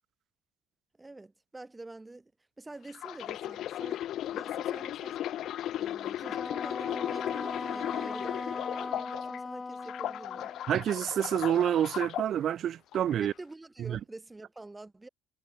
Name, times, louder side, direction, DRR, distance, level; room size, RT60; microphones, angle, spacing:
voice 1, 1.0-2.3 2.6-5.2 5.7-10.5 13.2-15.1, right 2 dB, 20° right, 7.6 m, -47 dB
sound 1, 2.9-9.4 9.8-12.3 12.9-13.1, left 12 dB, 65° left, 0.4 m, -36 dB
Wind instrument woodwind instrument, 6.2-10.7, left 4 dB, 30° left, 1.8 m, -38 dB
voice 2, 10.7-13.3 13.8-14.0, right 10 dB, 60° right, 2.2 m, -28 dB
hypercardioid pair, 55°, 0 cm